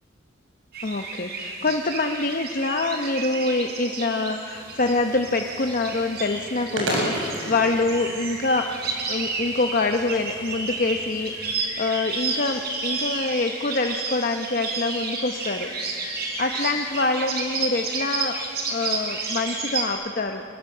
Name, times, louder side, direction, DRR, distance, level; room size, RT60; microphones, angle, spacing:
sound 1, 0.7-19.9, right 3 dB, 55° right, 4.2 m, -31 dB
voice 1, 0.8-8.7 9.1-18.4 18.7-20.4, left 3 dB, 45° left, 5 dB, 0.9 m, -25 dB
sound 2, 4.5-11.5, right 1 dB, 90° right, 6.9 m, -35 dB
26.5 x 20.5 x 7.9 m, 2.6 s
head